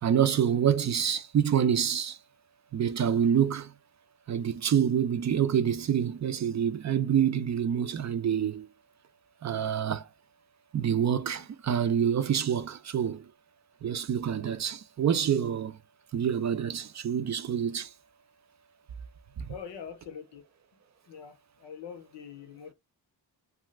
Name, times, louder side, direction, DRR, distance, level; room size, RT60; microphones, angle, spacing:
voice 1, 0.0-2.2 2.7-3.7 4.3-8.7 9.4-10.1 10.7-13.3 13.8-15.8 16.1-17.9 19.4-19.5, right 8 dB, 45° right, 0.4 m, -27 dB
voice 2, 19.5-20.4 21.1-22.7, left 7 dB, 85° left, 0.7 m, -44 dB
2.6 x 2.4 x 3.1 m
cardioid pair, 80°, 43 cm